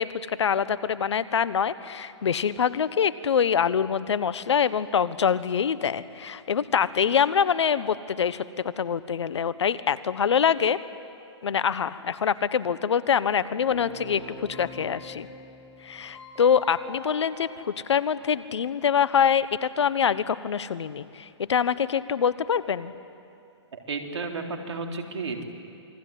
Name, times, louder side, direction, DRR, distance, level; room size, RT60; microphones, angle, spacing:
voice 1, 0.0-10.8 11.4-15.3 15.8-22.9, left 7 dB, 70° left, 16 dB, 1.1 m, -25 dB
Keyboard (musical), 13.7-18.7, left 1 dB, 15° left, 6.6 m, -44 dB
voice 2, 23.7-25.4, right 4 dB, 70° right, 3 dB, 3.8 m, -33 dB
28.0 x 21.5 x 9.4 m, 2.5 s
hypercardioid pair, 140°, 15 cm